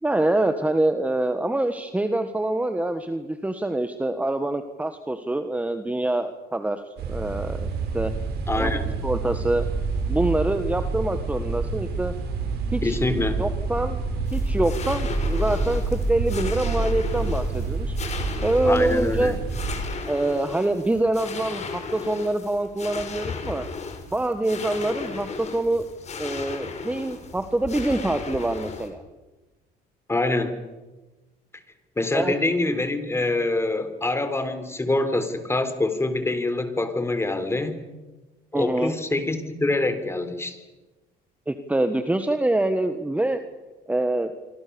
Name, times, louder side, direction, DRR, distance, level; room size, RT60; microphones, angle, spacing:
voice 1, 0.0-6.8 7.1-7.7 7.9-8.1 8.6-9.6 10.1-12.1 12.7-13.0 13.4-14.0 14.3-18.0 18.4-19.4 20.1-23.7 24.1-25.8 26.2-29.0 32.1-32.3 38.5-38.9 41.5-43.4 43.9-44.3, right 1 dB, 10° right, 8 dB, 1.6 m, -25 dB
sound 1, 7.0-19.8, right 3 dB, 70° right, 6.8 m, -28 dB
voice 2, 8.5-9.0 12.8-13.4 18.6-19.3 30.1-30.5 32.0-37.8 38.5-40.6, left 2 dB, 15° left, 9 dB, 3.7 m, -25 dB
sound 2, 14.3-28.9, left 5 dB, 40° left, 4.8 m, -36 dB
26.5 x 25.5 x 7.1 m, 1.1 s
cardioid pair, 110°, 17 cm